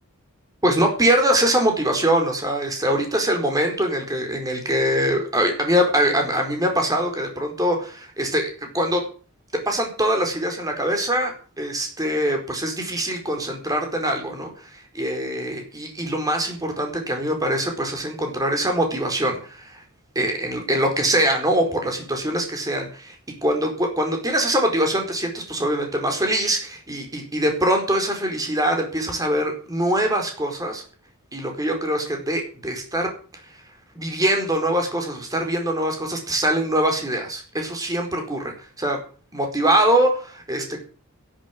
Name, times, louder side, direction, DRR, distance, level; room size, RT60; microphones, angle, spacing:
voice 1, 0.6-9.0 9.7-19.8 20.1-23.1 23.4-30.8 31.3-33.1 34.0-39.0 39.3-40.8, right 1 dB, 15° right, 3 dB, 4.5 m, -23 dB
12.5 x 11.5 x 7.6 m, 0.40 s
head